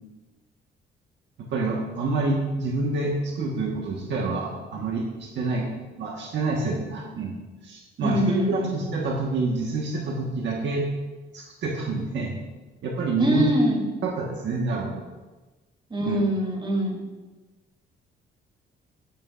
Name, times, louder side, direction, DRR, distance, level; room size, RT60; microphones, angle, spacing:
voice 1, 1.4-5.7 6.0-7.4 7.6-8.2 8.5-10.8 11.3-12.4 12.8-13.5 14.0-15.0 16.0-16.2, right 3 dB, 65° right, -1 dB, 1.5 m, -27 dB
voice 2, 8.0-8.8 13.2-13.8 15.9-17.0, equal, 25° right, -1 dB, 3.1 m, -24 dB
14.0 x 10.0 x 2.5 m, 1.2 s
cardioid pair, 90°, 20 cm